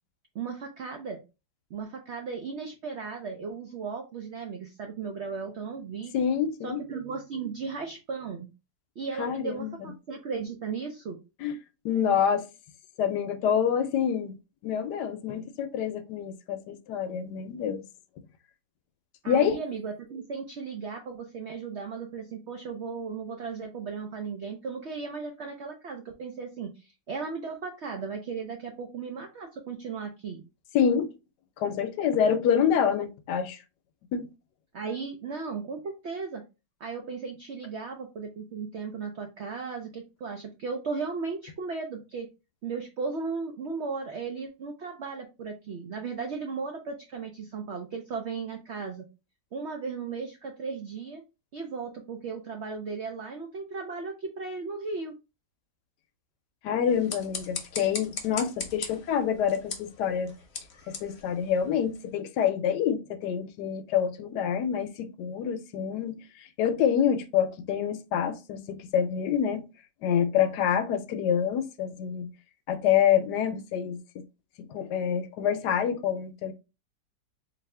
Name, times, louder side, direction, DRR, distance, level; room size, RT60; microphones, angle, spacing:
voice 1, 0.3-1.2 1.7-6.1 6.6-8.5 9.0-11.2 19.2-30.4 34.7-36.4 36.8-42.3 42.6-49.0 49.5-51.2 51.5-55.1, right 5 dB, 70° right, 0.6 m, -36 dB
voice 2, 6.1-6.8 9.2-9.7 11.4-11.6 11.8-12.4 13.0-14.3 14.6-17.8 19.3-19.6 30.7-31.1 31.6-33.6 34.1-34.3 56.6-60.3 60.9-69.6 70.0-72.3 72.7-74.2 74.7-76.5, left 8 dB, 75° left, 1.1 m, -27 dB
sound 1, 56.8-62.1, left 5 dB, 50° left, 0.9 m, -40 dB
4.1 x 2.7 x 3.2 m
omnidirectional pair, 1.9 m